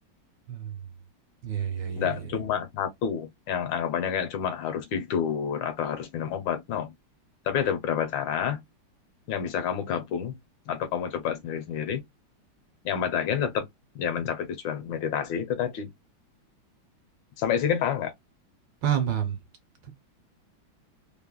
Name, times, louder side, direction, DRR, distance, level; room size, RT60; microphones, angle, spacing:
voice 1, 1.4-2.4 18.8-19.4 19.9-20.0, right 9 dB, 70° right, 1.3 m, -29 dB
voice 2, 2.0-6.9 7.5-8.6 9.3-10.4 10.7-12.0 12.8-13.7 13.9-15.9 17.4-18.1, left 8 dB, 75° left, 1.3 m, -29 dB
3.4 x 2.1 x 2.2 m
omnidirectional pair, 2.2 m